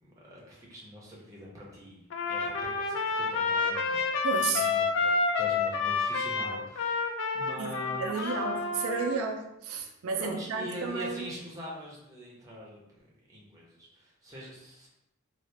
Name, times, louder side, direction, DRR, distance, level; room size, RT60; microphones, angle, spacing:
voice 1, 0.0-8.4 10.2-13.0 13.3-14.9, equal, 15° right, -4 dB, 0.7 m, -43 dB
Trumpet, 2.1-9.2, left 4 dB, 60° left, 0.3 m, -29 dB
voice 2, 4.2-4.7 7.6-11.3, right 5 dB, 90° right, 3 dB, 0.4 m, -32 dB
2.8 x 2.4 x 3.2 m, 0.83 s
head